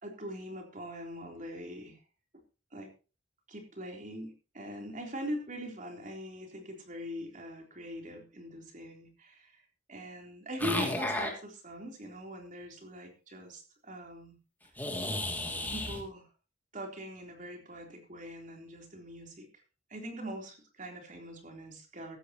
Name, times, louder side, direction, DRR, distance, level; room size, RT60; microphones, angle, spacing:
voice 1, 0.0-2.0 2.7-2.9 3.5-14.4 15.7-16.3 16.7-19.5 19.9-22.2, equal, 45° right, 2 dB, 3.7 m, -42 dB
sound 1, 10.6-11.3 14.8-16.0, left 1 dB, 10° left, 2.6 m, -33 dB
15.0 x 14.5 x 3.0 m, 0.33 s
head